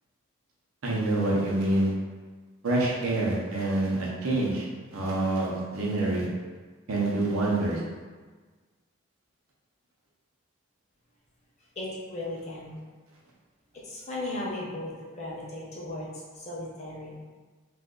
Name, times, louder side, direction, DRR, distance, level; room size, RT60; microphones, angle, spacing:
voice 1, 0.8-1.9 2.6-6.3 6.9-7.8, right 2 dB, 80° right, -4 dB, 0.7 m, -26 dB
voice 2, 11.7-12.8 13.7-17.2, left 1 dB, 30° left, -5 dB, 0.7 m, -36 dB
2.5 x 2.4 x 3.7 m, 1.4 s
head